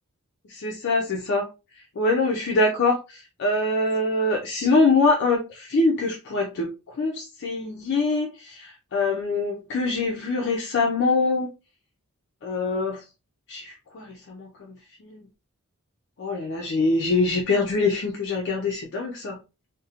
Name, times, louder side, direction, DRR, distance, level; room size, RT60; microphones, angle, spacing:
voice 1, 0.5-1.4 2.0-6.7 7.0-11.5 12.4-13.0 13.5-14.8 15.0-15.2 16.2-19.4, left 3 dB, 50° left, 0.4 m, -24 dB
2.5 x 2.0 x 2.7 m
head